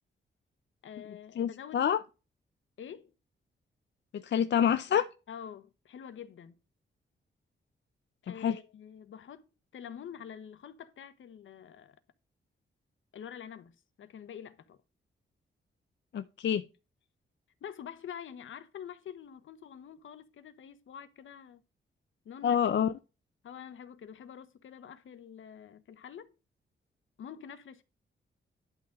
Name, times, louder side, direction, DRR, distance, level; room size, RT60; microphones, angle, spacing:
voice 1, 0.8-1.8 2.8-3.1 5.3-6.5 8.2-9.4 9.7-12.0 13.1-14.8 17.6-21.6 22.2-22.6 23.4-26.3 27.2-27.8, left 8 dB, 80° left, 1.1 m, -46 dB
voice 2, 1.4-2.0 4.1-5.1 8.4-8.6 16.1-16.6 22.4-22.9, left 8 dB, 65° left, 0.6 m, -27 dB
11.5 x 3.9 x 7.4 m
cardioid pair, 95°, 20 cm